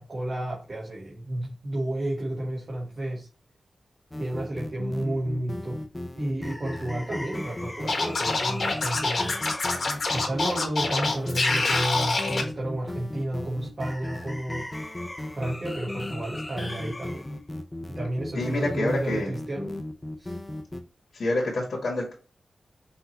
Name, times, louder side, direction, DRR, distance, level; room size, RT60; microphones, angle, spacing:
voice 1, 0.0-3.3 4.2-5.8 6.2-9.4 10.1-14.7 15.3-17.2 17.9-19.7 20.2-20.4, right 1 dB, 45° right, 1.3 m, -31 dB
sound 1, 4.1-20.8, left 1 dB, 20° left, 0.7 m, -36 dB
Scratching (performance technique), 7.9-12.4, left 3 dB, 60° left, 1.3 m, -26 dB
voice 2, 18.3-19.3 21.1-22.1, left 2 dB, 80° left, 1.7 m, -27 dB
5.7 x 2.7 x 3.0 m
wide cardioid pair, 90°, 0 cm